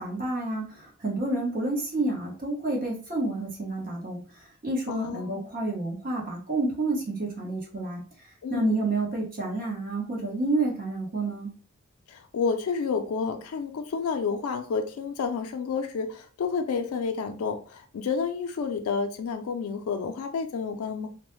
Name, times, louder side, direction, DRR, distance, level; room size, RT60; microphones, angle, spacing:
voice 1, 0.0-8.0 8.5-11.5, right 2 dB, 40° right, 0.9 m, -29 dB
voice 2, 4.9-5.5 8.4-8.8 12.1-21.1, left 5 dB, 85° left, 0.3 m, -30 dB
2.3 x 2.1 x 3.0 m
head